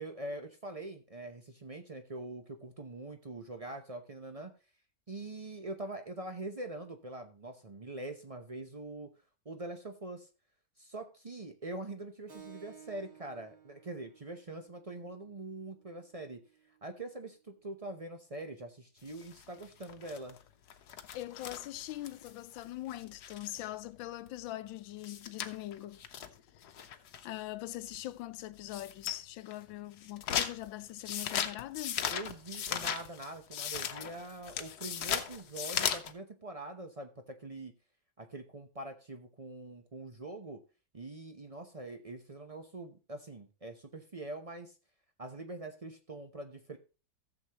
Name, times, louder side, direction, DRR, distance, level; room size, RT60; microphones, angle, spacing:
voice 1, 0.0-4.5 5.1-9.1 9.4-10.3 10.8-16.4 16.8-20.4 32.1-37.7 38.2-40.6 40.9-44.7 45.2-46.8, right 2 dB, 50° right, 0.4 m, -44 dB
Keyboard (musical), 12.3-17.4, right 8 dB, 90° right, 2.8 m, -58 dB
sound 1, 19.1-23.6 24.0-24.1 24.3-24.4 24.7-24.8 25.0-27.4 27.9-28.1 28.6-29.2 29.5-36.1, left 8 dB, 60° left, 1.3 m, -37 dB
voice 2, 21.1-26.0 26.6-26.7 27.2-32.0, left 15 dB, 85° left, 1.4 m, -42 dB
14.5 x 7.3 x 2.9 m
omnidirectional pair, 2.1 m